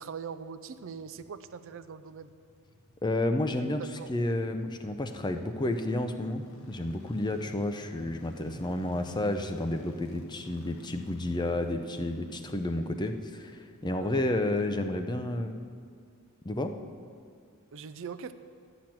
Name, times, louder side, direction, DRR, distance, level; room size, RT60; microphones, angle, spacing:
voice 1, 0.0-2.3 4.0-4.1 14.0-14.1 17.7-18.3, right 6 dB, 60° right, 12 dB, 0.5 m, -41 dB
sound 1, 0.8-15.9 16.2-16.3, left 1 dB, 65° left, 1.3 m, -54 dB
voice 2, 3.0-3.8 4.1-13.5 13.8-15.6 16.4-16.7, left 1 dB, 20° left, 7 dB, 0.6 m, -31 dB
11.5 x 6.1 x 8.8 m, 2.1 s
head